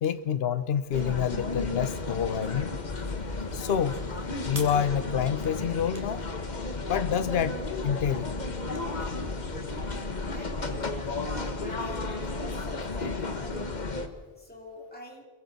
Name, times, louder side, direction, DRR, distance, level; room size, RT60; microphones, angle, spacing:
voice 1, 0.0-2.8 3.5-4.1 4.5-6.3 6.9-8.3, left 8 dB, 70° left, 12 dB, 1.0 m, -28 dB
sound 1, 0.9-14.1, left 3 dB, 45° left, 1.4 m, -33 dB
sound 2, 1.9-10.7, right 1 dB, 35° right, 3.4 m, -52 dB
voice 2, 10.3-13.8 14.4-15.2, left 1 dB, 10° left, -1 dB, 2.9 m, -45 dB
29.5 x 22.5 x 4.1 m, 1.4 s
omnidirectional pair, 1.1 m